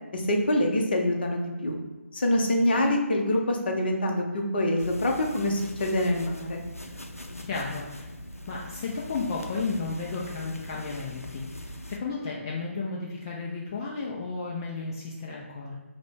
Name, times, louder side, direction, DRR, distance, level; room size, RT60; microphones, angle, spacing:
voice 1, 0.1-1.8 2.1-6.6, left 1 dB, 45° left, 1 dB, 0.7 m, -25 dB
sound 1, 4.8-12.0, left 1 dB, 85° left, 0.5 m, -41 dB
voice 2, 7.4-8.1 8.5-15.7, left 4 dB, 20° left, -4 dB, 0.3 m, -33 dB
4.8 x 2.1 x 3.4 m, 1.2 s
figure-of-eight pair, 150°, 8 cm